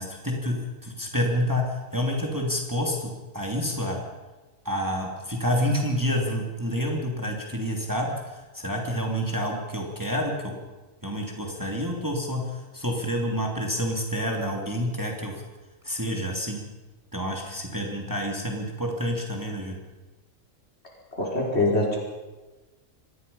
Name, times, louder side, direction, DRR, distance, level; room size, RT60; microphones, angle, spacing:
voice 1, 0.0-4.0 4.6-10.6 11.0-15.4 15.8-16.6 17.1-19.8, equal, 15° right, 0 dB, 2.9 m, -28 dB
voice 2, 21.2-22.0, left 2 dB, 50° left, -2 dB, 5.7 m, -23 dB
25.5 x 19.5 x 5.5 m, 1.2 s
omnidirectional pair, 1.4 m